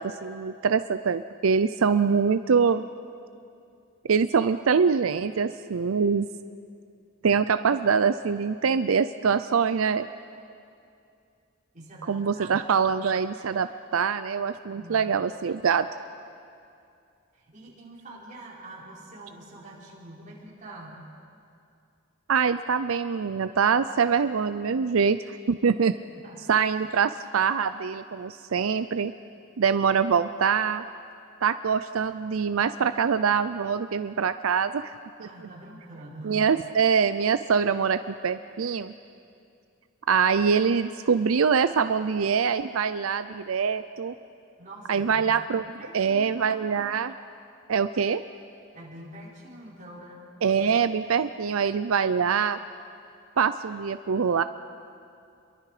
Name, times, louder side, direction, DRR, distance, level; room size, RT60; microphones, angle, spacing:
voice 1, 0.0-2.8 4.1-6.3 7.2-10.1 12.1-15.9 22.3-25.9 26.5-29.1 29.6-30.8 31.4-34.9 35.2-35.3 36.2-38.9 40.1-44.1 44.9-45.6 45.9-47.1 47.7-48.2 50.4-52.6 53.4-54.4, right 6 dB, 90° right, 12 dB, 0.5 m, -24 dB
voice 2, 11.7-12.5 14.7-15.2 17.3-21.0 26.2-26.5 35.2-36.5 44.6-45.2 45.8-46.8 48.7-50.2, right 1 dB, 35° right, -5 dB, 5.1 m, -45 dB
29.5 x 23.0 x 5.0 m, 2.5 s
head